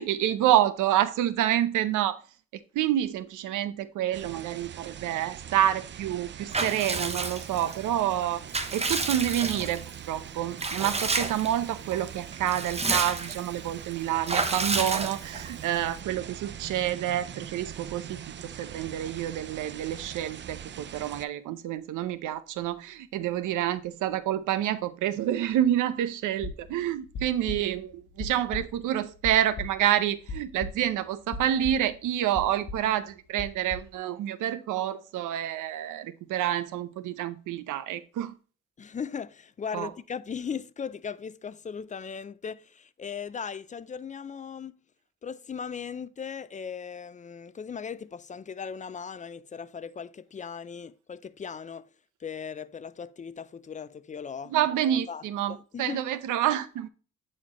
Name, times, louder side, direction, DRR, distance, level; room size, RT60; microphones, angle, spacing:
voice 1, 0.0-2.2 2.7-8.4 8.7-18.2 18.4-38.3 39.7-39.9 54.5-56.9, right 11 dB, 85° right, 0.7 m, -28 dB
sound 1, 4.1-21.3, right 9 dB, 40° right, 0.5 m, -42 dB
Water / Bathtub (filling or washing) / Liquid, 6.5-7.8 8.2-9.9 10.6-11.5 11.9-12.0 12.3-13.5 14.3-15.5, right 3 dB, 20° right, 0.8 m, -30 dB
sound 2, 26.4-31.0 31.3-32.1 32.3-32.9 33.4-33.9, left 3 dB, 60° left, 1.3 m, -38 dB
voice 2, 38.8-44.8 45.2-51.9 52.2-54.6 54.9-55.2 55.5-56.0, left 6 dB, 25° left, 0.4 m, -38 dB
8.7 x 4.3 x 3.0 m
cardioid pair, 90°, 30 cm